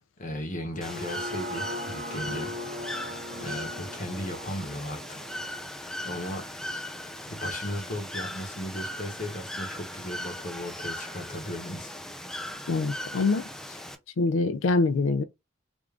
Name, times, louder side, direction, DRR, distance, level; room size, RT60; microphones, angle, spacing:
voice 1, 0.2-5.2 6.0-6.4 7.2-11.9, left 1 dB, 40° left, 0.9 m, -36 dB
sound 1, 0.7-6.9 7.3-7.4, left 1 dB, 45° right, 0.6 m, -39 dB
Bird / Water, 0.8-14.0, left 1 dB, 5° left, 0.5 m, -38 dB
voice 2, 12.7-13.5 14.2-15.2, left 3 dB, 80° left, 0.4 m, -24 dB
3.5 x 2.5 x 3.3 m
head